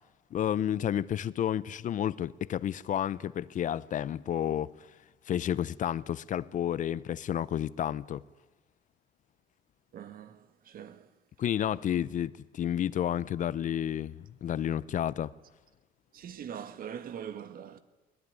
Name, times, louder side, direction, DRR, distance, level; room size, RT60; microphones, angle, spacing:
voice 1, 0.3-4.7 5.3-8.2 11.4-15.3, left 10 dB, 50° left, 0.7 m, -31 dB
voice 2, 9.9-11.1 16.1-17.8, right 8 dB, 60° right, 1.7 m, -42 dB
21.5 x 20.0 x 9.6 m
cardioid pair, 110°, 17 cm